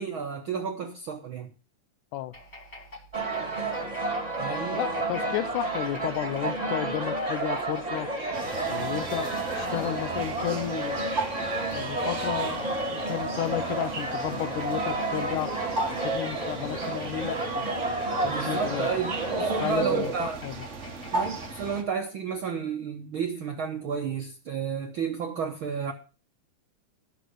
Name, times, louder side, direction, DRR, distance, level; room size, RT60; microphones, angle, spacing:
voice 1, 0.0-1.5 4.4-4.8 18.3-19.1 19.4-20.4 21.1-25.9, right 6 dB, 70° right, 1.2 m, -31 dB
sound 1, 2.3-21.6, left 1 dB, 20° left, 1.9 m, -45 dB
sound 2, 3.1-19.7, right 2 dB, 15° right, 2.0 m, -31 dB
voice 2, 4.7-8.1 8.7-11.0 11.7-15.5 16.0-17.7 18.2-19.0 19.6-20.5, left 12 dB, 80° left, 2.2 m, -32 dB
sound 3, 8.3-21.8, right 3 dB, 50° right, 0.8 m, -35 dB
12.0 x 7.0 x 6.2 m
omnidirectional pair, 3.6 m